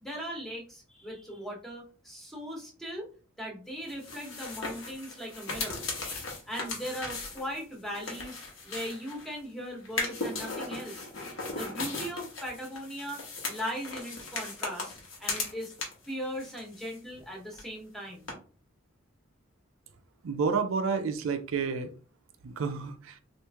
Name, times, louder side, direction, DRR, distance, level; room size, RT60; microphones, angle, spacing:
voice 1, 0.0-3.1 3.4-5.8 6.5-11.1 11.5-14.9 15.2-15.7 16.1-18.3, equal, ahead, -1 dB, 0.9 m, -39 dB
sound 1, 3.9-9.4 9.8-16.1 16.4-17.3 17.5-17.6 18.3-18.4, left 3 dB, 75° left, 1.1 m, -37 dB
voice 2, 20.2-21.9 22.4-23.2, right 5 dB, 85° right, 7 dB, 0.5 m, -30 dB
3.0 x 2.5 x 3.4 m, 0.38 s
head